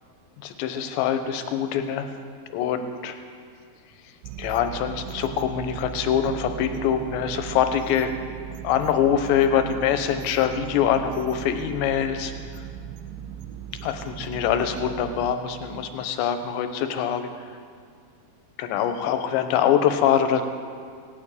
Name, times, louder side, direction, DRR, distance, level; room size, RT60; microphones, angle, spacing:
voice 1, 0.4-2.1 2.5-3.2 4.4-8.1 8.6-12.3 13.8-17.3 18.6-20.5, left 9 dB, 85° left, 8 dB, 3.2 m, -24 dB
sound 1, 4.2-15.4, right 10 dB, 90° right, 3.1 m, -38 dB
17.5 x 9.0 x 8.7 m, 2.2 s
omnidirectional pair, 5.0 m